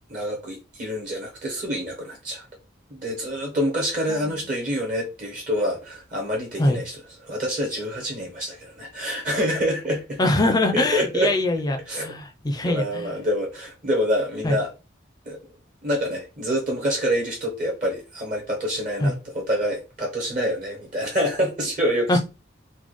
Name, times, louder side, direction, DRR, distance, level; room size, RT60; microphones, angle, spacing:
voice 1, 0.1-2.5 2.9-10.2 10.7-11.3 11.9-12.1 12.6-14.7 15.3-15.4 15.8-22.2, equal, 40° right, 0.8 m, -26 dB
voice 2, 10.2-13.1 14.4-14.6 19.0-19.1 22.1-22.2, left 1 dB, 20° left, 0.4 m, -23 dB
4.1 x 2.1 x 3.1 m
head